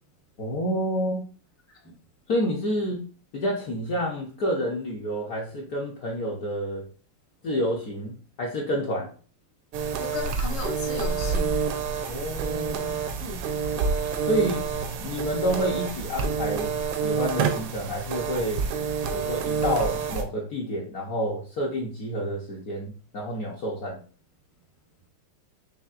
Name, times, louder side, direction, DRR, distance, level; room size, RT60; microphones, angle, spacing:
voice 1, 0.4-1.2 2.3-3.0 3.3-6.9 7.4-9.1 12.1-13.0 14.2-14.6 15.0-18.7 19.1-24.0, equal, 60° left, -2 dB, 0.9 m, -29 dB
sound 1, 9.7-20.2, right 5 dB, 85° right, 1.5 m, -28 dB
voice 2, 10.0-11.6 13.1-13.5, left 3 dB, 15° left, -1 dB, 0.5 m, -36 dB
5.6 x 3.0 x 2.4 m, 0.38 s
omnidirectional pair, 2.4 m